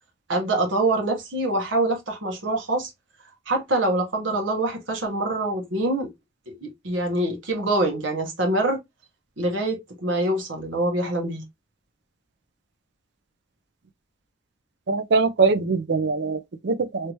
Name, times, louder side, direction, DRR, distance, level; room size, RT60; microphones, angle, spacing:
voice 1, 0.3-2.9 3.5-6.1 6.5-8.8 9.4-11.4, right 2 dB, 80° right, 1.3 m, -25 dB
voice 2, 14.9-17.1, right 4 dB, 60° right, 0.5 m, -22 dB
3.3 x 2.8 x 2.9 m
head